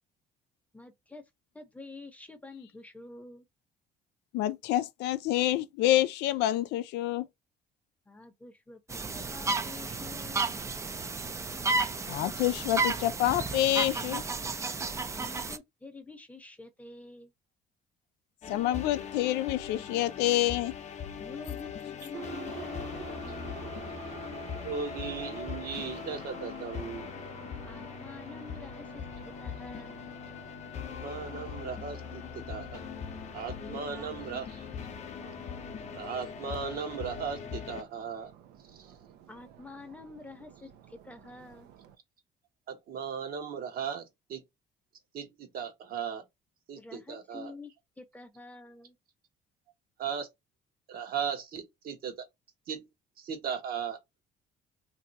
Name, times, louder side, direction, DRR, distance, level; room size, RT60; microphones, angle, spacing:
voice 1, 0.7-1.3 1.5-3.5 8.1-10.5 15.1-17.3 21.2-23.7 27.6-29.1 29.4-30.0 33.6-34.4 39.3-41.7 46.8-47.7 48.0-49.0, left 3 dB, 10° left, 0.7 m, -48 dB
voice 2, 4.3-7.3 12.1-14.2 18.5-20.7, left 14 dB, 85° left, 0.4 m, -27 dB
sound 1, 8.9-15.6, right 3 dB, 15° right, 0.3 m, -32 dB
sound 2, 18.4-37.8, left 7 dB, 40° left, 0.7 m, -41 dB
Subway metro underground, 22.1-42.0, right 9 dB, 80° right, 0.5 m, -50 dB
voice 3, 24.6-27.1 31.0-32.8 33.3-34.5 35.9-38.3 38.7-38.9 42.7-44.4 45.1-46.2 46.7-47.5 50.0-50.3 50.9-52.3 52.7-52.9 53.2-54.0, right 6 dB, 60° right, 1.0 m, -37 dB
2.7 x 2.3 x 3.9 m
cardioid pair, 110°, 17 cm